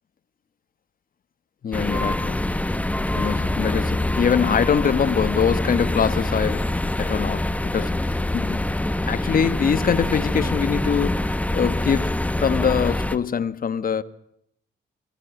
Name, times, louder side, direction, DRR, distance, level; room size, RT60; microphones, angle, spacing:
voice 1, 1.6-2.4 3.1-8.0 8.3-8.7 9.0-14.0, left 7 dB, 45° left, 1.3 m, -23 dB
sound 1, 1.7-13.2, left 1 dB, 5° left, 1.1 m, -25 dB
23.5 x 18.5 x 9.2 m
cardioid pair, 90°, 20 cm